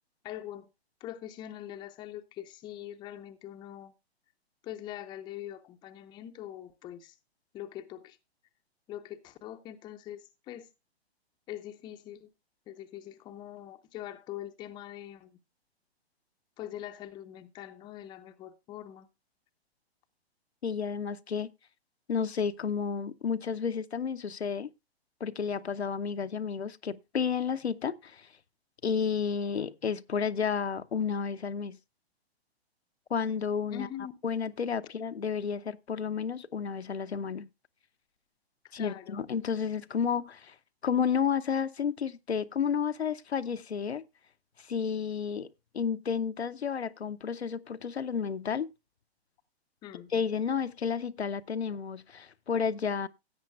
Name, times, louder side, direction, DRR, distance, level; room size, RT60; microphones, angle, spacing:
voice 1, 0.2-0.7 1.0-3.9 4.6-7.1 7.5-8.2 8.9-10.7 11.5-12.3 12.7-15.4 16.6-19.1 33.7-34.1 38.6-39.2 49.8-50.1, left 12 dB, 15° left, 0.6 m, -43 dB
voice 2, 20.6-21.5 22.1-24.7 25.2-28.3 28.8-31.8 33.1-33.9 34.2-37.5 38.7-40.5 40.8-44.0 44.6-45.5 45.7-48.7 50.1-53.1, left 6 dB, 80° left, 0.7 m, -31 dB
16.5 x 8.2 x 2.3 m
figure-of-eight pair, 120°, 32 cm